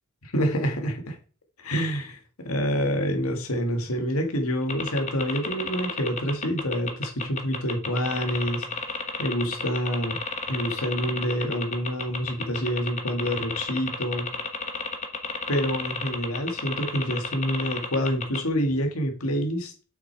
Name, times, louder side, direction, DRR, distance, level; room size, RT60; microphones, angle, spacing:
voice 1, 0.2-1.2 1.6-8.7 9.2-10.2 10.5-14.3 15.5-19.7, equal, 80° left, 2.0 m, -27 dB
sound 1, 4.7-18.5, left 4 dB, 35° left, 1.3 m, -31 dB
7.9 x 6.4 x 4.6 m
head